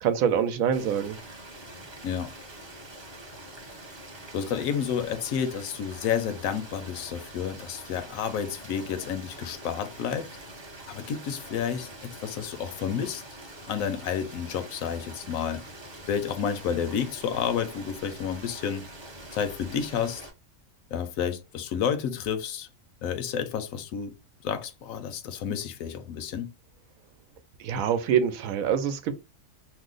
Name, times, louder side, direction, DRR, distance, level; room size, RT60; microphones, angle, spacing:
voice 1, 0.0-1.2 27.6-29.1, right 8 dB, 90° right, 1.0 m, -25 dB
sound 1, 0.7-20.3, right 1 dB, 30° right, 0.5 m, -45 dB
voice 2, 4.3-10.3 10.8-13.2 13.7-15.6 16.1-18.9 19.3-20.2 20.9-22.7 23.0-24.1 24.4-26.5, left 8 dB, 85° left, 1.0 m, -30 dB
2.8 x 2.1 x 3.7 m
omnidirectional pair, 1.4 m